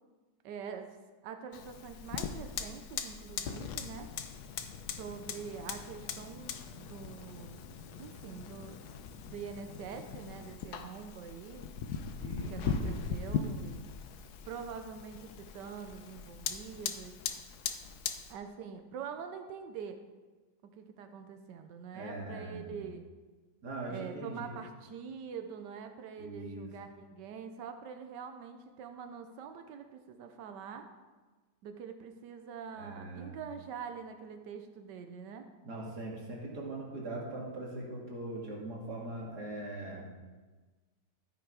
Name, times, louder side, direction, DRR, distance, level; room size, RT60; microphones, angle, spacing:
voice 1, 0.4-0.9 1.2-4.1 5.0-7.6 8.0-8.8 9.3-11.7 12.5-13.8 14.5-17.2 18.3-20.0 20.7-23.0 23.9-30.9 31.6-35.5, right 6 dB, 90° right, 7 dB, 1.4 m, -45 dB
Fire, 1.5-18.3, left 6 dB, 75° left, 1.2 m, -40 dB
voice 2, 12.2-13.0 21.9-22.8 23.6-24.6 26.2-26.7 32.8-33.3 35.6-40.1, right 2 dB, 70° right, -3 dB, 2.7 m, -41 dB
14.0 x 6.2 x 4.7 m, 1.3 s
omnidirectional pair, 1.8 m